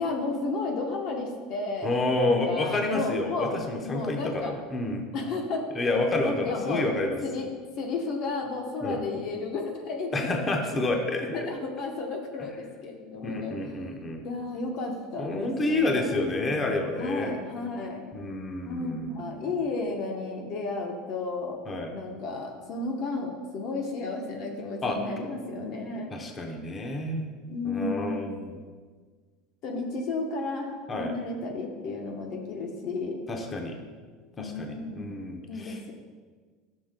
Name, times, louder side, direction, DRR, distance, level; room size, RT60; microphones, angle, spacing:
voice 1, 0.0-3.5 3.8-4.5 5.1-5.7 6.2-6.9 7.2-7.5 7.8-10.3 11.3-13.6 14.2-16.2 16.9-18.0 18.6-21.6 21.9-26.1 27.5-28.3 29.6-33.3 34.4-35.1 35.5-35.9, left 3 dB, 40° left, 2 dB, 0.9 m, -33 dB
voice 2, 1.8-5.0 5.7-7.2 8.8-9.0 10.1-11.5 13.2-14.3 15.2-17.3 18.1-19.5 21.7-21.9 24.8-25.0 26.1-27.3 27.6-28.5 30.9-31.1 33.3-33.8 34.4-35.8, left 2 dB, 15° left, 2 dB, 0.7 m, -29 dB
13.5 x 6.4 x 2.2 m, 1.5 s
cardioid pair, 165°, 0 cm